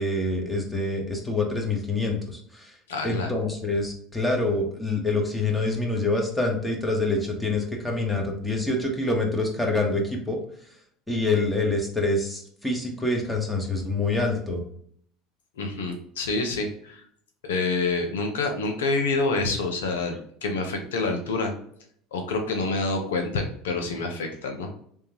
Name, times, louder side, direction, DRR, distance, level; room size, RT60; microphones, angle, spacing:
voice 1, 0.0-2.7 3.0-10.4 11.1-14.6, left 2 dB, 10° left, 0 dB, 1.3 m, -26 dB
voice 2, 2.9-3.3 15.6-17.0 17.4-21.5 22.1-24.7, left 3 dB, 85° left, 4 dB, 0.8 m, -27 dB
3.7 x 3.3 x 2.9 m, 0.63 s
hypercardioid pair, 85°, 0 cm